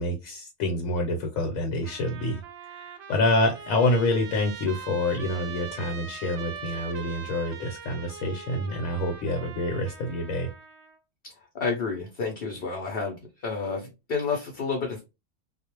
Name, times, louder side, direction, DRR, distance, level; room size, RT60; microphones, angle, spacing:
voice 1, 0.0-2.4 2.7-10.5, left 1 dB, 80° left, 1.0 m, -27 dB
Trumpet, 1.8-11.0, right 6 dB, 70° right, 0.5 m, -42 dB
voice 2, 11.5-15.0, left 4 dB, 60° left, 0.7 m, -30 dB
2.4 x 2.0 x 2.9 m
omnidirectional pair, 1.5 m